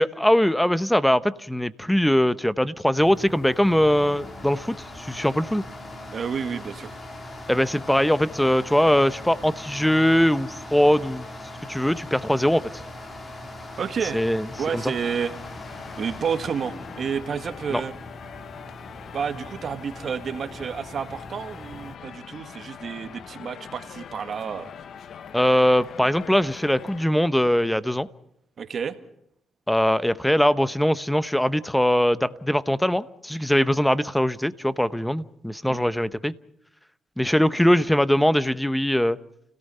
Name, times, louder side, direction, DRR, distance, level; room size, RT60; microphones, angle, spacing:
voice 1, 0.0-5.6 7.5-11.3 11.7-12.6 14.1-14.5 14.7-14.9 17.7-17.8 25.3-28.1 29.7-36.3 37.2-39.2, equal, 5° left, 16 dB, 0.9 m, -21 dB
sound 1, 3.0-21.9, left 1 dB, 35° left, 3.8 m, -40 dB
voice 2, 6.1-7.0 13.8-14.3 14.6-15.3 16.0-17.9 19.1-24.7 28.6-29.0 35.7-35.8, right 6 dB, 50° right, 9 dB, 1.8 m, -30 dB
sound 2, 14.5-27.0, left 7 dB, 60° left, 0.9 m, -43 dB
30.0 x 17.5 x 5.6 m, 0.75 s
cardioid pair, 90°, 0 cm